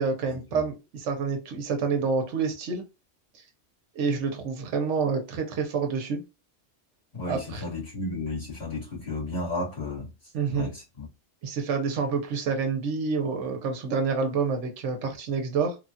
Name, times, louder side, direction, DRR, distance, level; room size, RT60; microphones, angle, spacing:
voice 1, 0.0-2.8 3.9-6.2 7.3-7.6 10.3-10.7 11.4-15.8, right 5 dB, 75° right, 1.0 m, -28 dB
voice 2, 7.1-10.1 10.5-11.1, left 2 dB, 55° left, 1.8 m, -33 dB
3.3 x 2.3 x 2.6 m
omnidirectional pair, 1.2 m